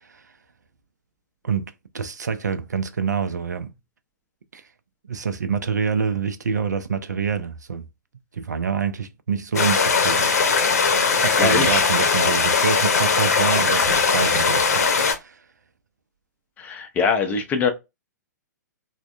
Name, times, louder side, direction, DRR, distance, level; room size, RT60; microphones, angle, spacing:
voice 1, 1.4-3.7 4.5-4.6 5.1-7.8 8.3-10.3 11.1-15.4, right 6 dB, 65° right, 0.4 m, -26 dB
sound 1, 9.5-15.1, left 5 dB, 55° left, 0.7 m, -19 dB
voice 2, 11.4-11.8 16.6-17.7, left 5 dB, 15° left, 0.5 m, -22 dB
3.3 x 2.1 x 2.4 m
figure-of-eight pair, 115°, 10 cm